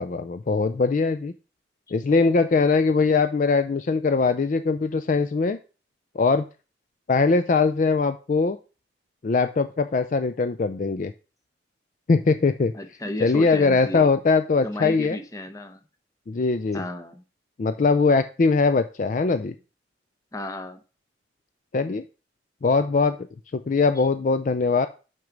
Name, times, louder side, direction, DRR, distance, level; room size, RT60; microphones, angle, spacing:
voice 1, 0.0-1.3 1.9-5.6 6.2-6.5 7.1-8.6 9.2-11.1 12.1-12.7 13.2-15.2 16.3-16.8 17.6-19.5 21.7-22.0 22.6-23.2 23.5-24.9, left 4 dB, 45° left, 10 dB, 0.4 m, -21 dB
voice 2, 12.7-14.1 14.6-15.8 16.7-17.2 20.3-20.8 24.0-24.1, left 1 dB, 20° left, 7 dB, 0.8 m, -34 dB
6.3 x 5.9 x 5.1 m, 0.34 s
head